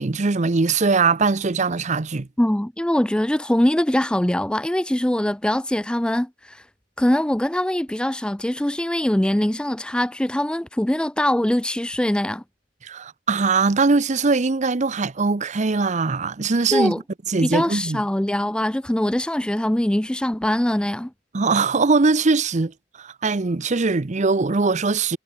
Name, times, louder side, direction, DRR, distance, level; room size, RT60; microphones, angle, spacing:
voice 1, 0.0-2.3 12.8-16.9 17.3-18.0 21.3-25.2, right 4 dB, 40° right, 0.7 m, -21 dB
voice 2, 2.4-6.6 7.0-12.4 16.7-17.0 17.4-21.1, left 1 dB, 5° left, 0.4 m, -22 dB
head